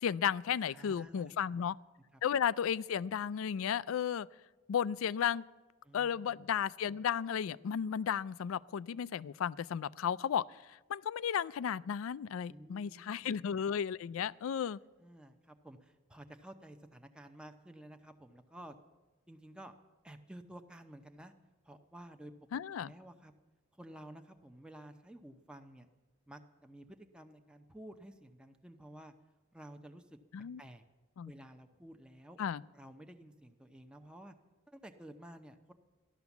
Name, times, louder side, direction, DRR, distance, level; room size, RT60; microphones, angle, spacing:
voice 1, 0.0-1.8 2.2-4.3 4.7-5.4 5.9-10.4 10.9-14.8 22.5-22.9 30.3-30.6 31.2-31.3 32.4-32.6, left 8 dB, 80° left, 21 dB, 0.4 m, -34 dB
voice 2, 0.7-1.7 2.1-2.2 5.8-6.5 12.5-13.5 14.6-14.7 15.0-18.8 19.3-19.7 20.0-21.3 21.6-22.3 22.9-23.3 23.7-25.9 26.3-29.1 29.5-30.2 30.6-30.8 31.2-32.4 32.7-34.3 34.7-35.7, right 1 dB, 5° right, 6 dB, 0.6 m, -53 dB
14.0 x 11.5 x 7.1 m, 1.2 s
head